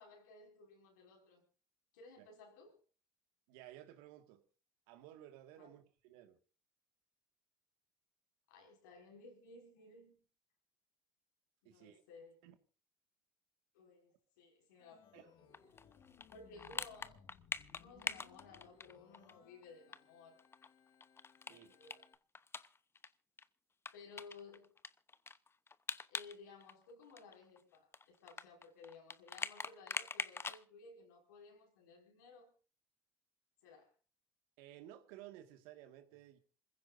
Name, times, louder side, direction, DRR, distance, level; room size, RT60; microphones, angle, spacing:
voice 1, 0.0-1.4 1.9-2.8 5.6-5.7 8.5-10.2 11.6-12.4 13.7-15.5 16.3-17.3 17.8-20.4 21.5-22.0 23.9-24.8 26.1-32.5 33.6-33.9, left 4 dB, 90° left, 6.0 m, -58 dB
voice 2, 3.5-4.4 4.9-6.4 11.6-12.0 12.4-12.5 15.1-15.3 21.5-21.7 34.6-36.4, right 12 dB, 80° right, 2.0 m, -56 dB
Organ, 14.8-22.1, left 7 dB, 60° left, 2.3 m, -65 dB
sound 1, 15.5-19.3 19.6-19.7 19.9-20.0 20.4-23.1 23.4-23.5 23.9-26.4 26.6-30.6, left 4 dB, 25° left, 0.9 m, -44 dB
27.0 x 15.5 x 2.7 m
hypercardioid pair, 70°, 9 cm